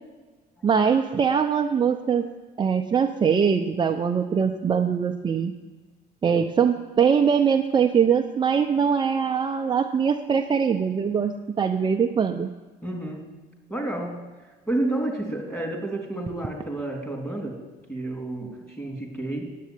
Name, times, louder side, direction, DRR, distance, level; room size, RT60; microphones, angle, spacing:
voice 1, 0.6-2.3 2.6-5.5 6.2-12.5, right 6 dB, 30° right, 4 dB, 0.6 m, -22 dB
voice 2, 12.8-13.3 13.7-14.3 14.7-17.6 17.9-19.5, right 2 dB, 15° left, 2 dB, 3.1 m, -30 dB
9.5 x 8.4 x 9.2 m, 1.2 s
cardioid pair, 110°, 17 cm